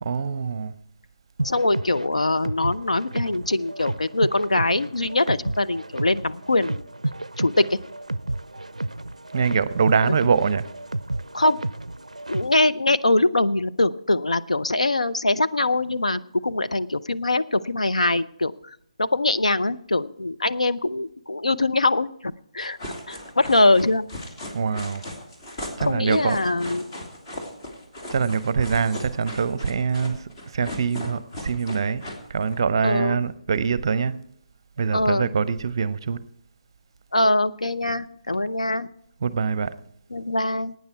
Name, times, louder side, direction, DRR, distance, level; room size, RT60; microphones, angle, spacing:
voice 1, 0.0-0.7 9.3-10.7 24.5-25.0 25.8-26.4 28.1-34.2 34.8-36.2 39.2-39.7, right 6 dB, 45° right, 0.6 m, -24 dB
voice 2, 1.4-6.8 7.4-7.8 10.1-10.2 11.3-11.6 12.3-18.5 19.0-22.8 23.1-24.1 25.8-26.9 32.8-33.2 34.9-35.3 37.1-38.9 40.1-40.7, left 2 dB, 75° left, 0.6 m, -23 dB
sound 1, 1.4-12.7, right 2 dB, 85° right, 0.4 m, -32 dB
sound 2, 22.6-32.6, left 1 dB, 30° left, 2.7 m, -37 dB
17.5 x 9.4 x 4.6 m
figure-of-eight pair, 145°, 4 cm